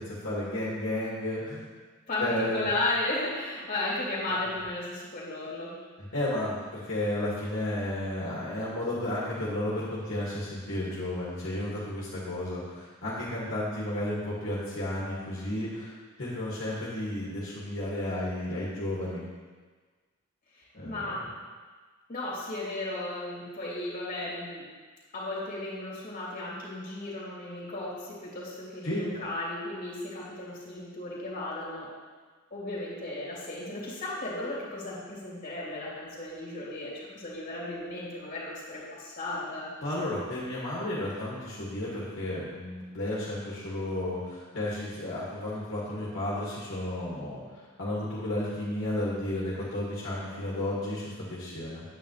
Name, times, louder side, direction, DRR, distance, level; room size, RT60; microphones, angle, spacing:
voice 1, 0.0-1.7 2.2-2.6 6.0-15.9 16.2-19.2 20.7-21.2 28.8-29.0 39.8-47.4 47.8-51.8, left 1 dB, 65° left, -8 dB, 2.3 m, -32 dB
voice 2, 2.1-5.7 20.8-21.2 22.1-24.6 25.1-31.9 32.5-39.7, left 2 dB, 40° left, -6 dB, 3.1 m, -34 dB
9.4 x 9.1 x 3.3 m, 1.4 s
head